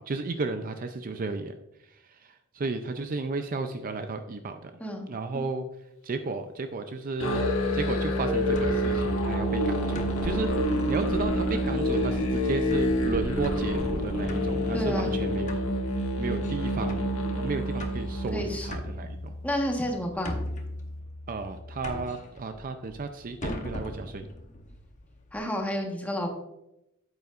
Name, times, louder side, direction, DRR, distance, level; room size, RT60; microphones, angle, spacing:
voice 1, 0.0-1.6 1.8-4.7 5.1-5.6 6.0-7.4 7.7-15.6 16.2-17.1 17.4-19.3 21.3-24.3, right 3 dB, 40° right, 7 dB, 0.5 m, -33 dB
Musical instrument, 7.2-18.8, equal, 80° left, 1.5 m, -27 dB
sound 1, 8.5-25.4, left 1 dB, 35° left, 0.9 m, -40 dB
voice 2, 14.7-15.1 18.3-18.7 19.4-20.4 25.3-26.3, equal, 5° left, 1 dB, 1.3 m, -30 dB
9.0 x 8.1 x 2.5 m, 0.86 s
head